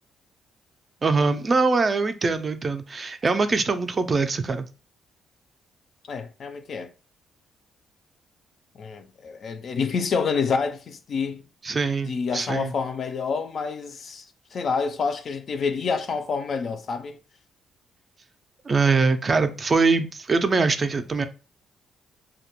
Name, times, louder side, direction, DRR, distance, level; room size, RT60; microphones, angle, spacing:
voice 1, 1.0-4.7 11.6-12.7 18.7-21.2, right 4 dB, 35° right, 0.3 m, -23 dB
voice 2, 6.1-6.9 8.8-11.4 12.0-14.2 14.5-17.2, left 5 dB, 55° left, 0.3 m, -28 dB
2.2 x 2.1 x 2.9 m
cardioid pair, 90°, 0 cm